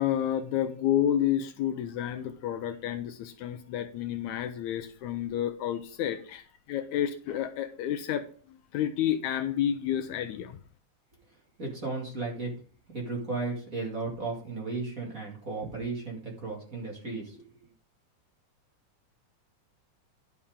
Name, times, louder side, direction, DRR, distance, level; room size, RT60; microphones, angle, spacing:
voice 1, 0.0-10.6, left 10 dB, 75° left, 8 dB, 2.0 m, -30 dB
voice 2, 11.6-12.5 12.9-17.4, right 3 dB, 30° right, -1 dB, 2.2 m, -34 dB
11.0 x 7.0 x 3.7 m, 0.42 s
omnidirectional pair, 3.6 m